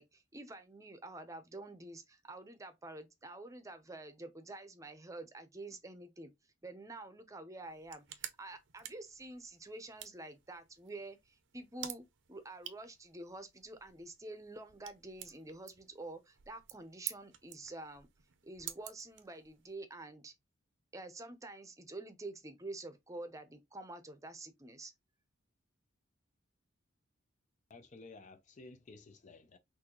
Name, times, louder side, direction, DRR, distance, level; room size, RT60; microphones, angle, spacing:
voice 1, 0.0-6.3 6.6-18.1 18.4-20.3 20.9-24.9, right 2 dB, 15° right, 0.7 m, -48 dB
sound 1, 7.6-19.7, right 11 dB, 60° right, 0.6 m, -50 dB
voice 2, 27.7-29.6, left 3 dB, 35° left, 0.5 m, -54 dB
6.1 x 2.6 x 3.0 m
head